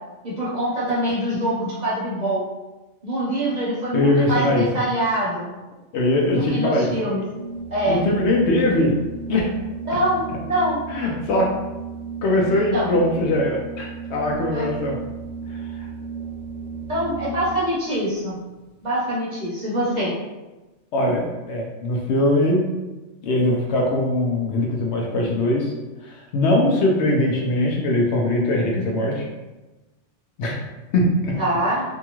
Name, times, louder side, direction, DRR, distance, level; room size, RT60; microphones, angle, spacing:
voice 1, 0.2-2.4 3.0-5.5 6.3-7.2 7.7-8.0 9.9-10.8 12.7-12.9 14.5-14.7 16.9-18.3 18.8-20.1 31.4-31.8, right 1 dB, 40° right, -8 dB, 0.8 m, -24 dB
voice 2, 3.9-4.7 5.9-6.9 7.9-8.9 9.3-9.5 10.9-11.5 12.2-15.0 20.9-22.6 23.2-25.7 26.0-29.3 30.4-30.6 30.9-31.4, left 1 dB, 70° left, -1 dB, 0.8 m, -21 dB
Organ, 7.3-17.5, right 5 dB, 25° left, 0.8 m, -34 dB
2.7 x 2.3 x 2.9 m, 1.1 s
omnidirectional pair, 1.3 m